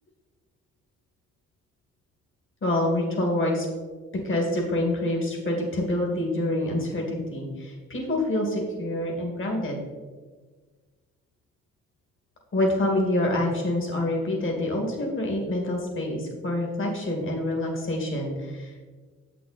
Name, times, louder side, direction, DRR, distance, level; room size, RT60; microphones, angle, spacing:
voice 1, 2.6-3.7 4.1-9.8 12.5-18.7, left 1 dB, 40° left, 0 dB, 2.3 m, -26 dB
8.2 x 5.9 x 4.2 m, 1.4 s
cardioid pair, 90°, 30 cm